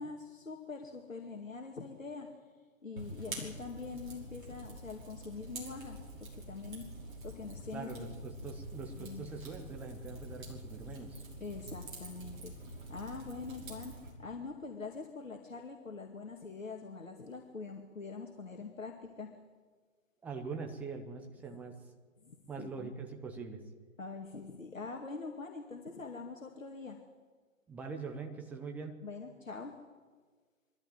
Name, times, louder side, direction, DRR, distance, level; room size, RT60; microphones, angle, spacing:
voice 1, 0.0-2.4 2.8-8.1 9.0-9.2 11.4-19.4 22.2-22.9 24.0-27.0 29.0-29.8, left 4 dB, 70° left, 2 dB, 2.3 m, -44 dB
Fire, 3.0-14.1, right 1 dB, 35° right, 5.8 m, -46 dB
voice 2, 7.7-11.3 20.2-21.8 22.5-23.6 27.7-29.1, right 4 dB, 5° right, 3 dB, 0.8 m, -43 dB
22.5 x 13.5 x 9.1 m, 1.5 s
figure-of-eight pair, 135°, 41 cm